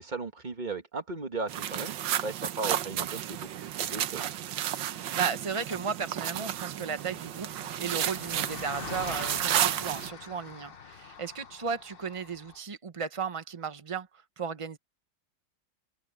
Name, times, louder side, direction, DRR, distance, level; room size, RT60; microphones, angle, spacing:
voice 1, 0.0-4.3, right 3 dB, 25° right, 1.5 m, -37 dB
sound 1, 1.5-10.1, right 11 dB, 70° right, 1.5 m, -32 dB
voice 2, 4.7-7.5 7.8-14.1 14.4-14.8, right 6 dB, 45° right, 0.4 m, -35 dB
Car passing by, 5.5-5.6 5.7-12.6, left 6 dB, 40° left, 0.8 m, -45 dB
omnidirectional pair, 2.1 m